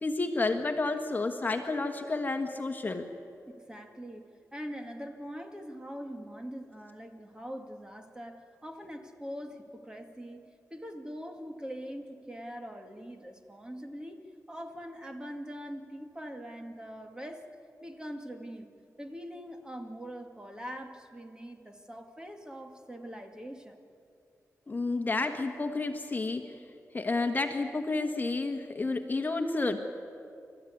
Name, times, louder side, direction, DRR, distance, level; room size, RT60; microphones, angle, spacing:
voice 1, 0.0-3.0 24.7-26.5 26.9-29.8, left 3 dB, 30° left, 5 dB, 1.5 m, -30 dB
voice 2, 3.5-17.5 17.8-18.7 19.0-23.8, equal, 15° right, 4 dB, 2.1 m, -43 dB
29.5 x 14.0 x 9.6 m, 2.5 s
wide cardioid pair, 95°, 6 cm